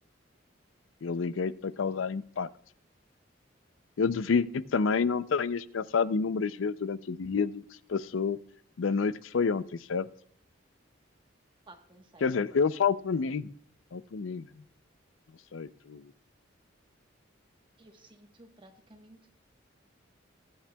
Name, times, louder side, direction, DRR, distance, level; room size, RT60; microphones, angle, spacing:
voice 1, 1.0-2.5 4.0-7.6 7.9-8.4 8.8-10.1 12.2-13.5 13.9-14.5 15.5-16.1, left 5 dB, 85° left, 16 dB, 0.5 m, -29 dB
voice 2, 11.7-12.4 17.8-19.3, right 1 dB, 25° right, 4 dB, 1.2 m, -55 dB
21.5 x 8.6 x 2.3 m, 0.63 s
head